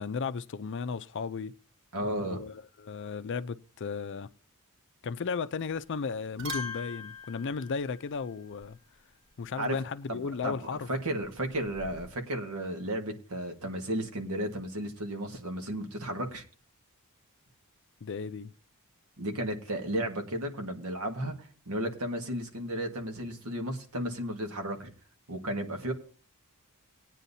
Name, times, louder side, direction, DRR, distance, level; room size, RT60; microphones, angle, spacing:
voice 1, 0.0-1.6 2.3-4.3 5.0-8.8 9.4-10.9 18.0-18.5, left 5 dB, 55° left, 0.5 m, -35 dB
voice 2, 1.9-2.4 9.6-9.8 10.1-10.2 10.4-10.6 10.9-16.4 19.2-24.9 25.3-25.9, right 1 dB, 85° right, 1.7 m, -33 dB
sound 1, 5.6-5.9 6.2-8.7 11.2-12.1, left 3 dB, 60° right, 2.4 m, -42 dB
19.0 x 9.1 x 2.7 m
head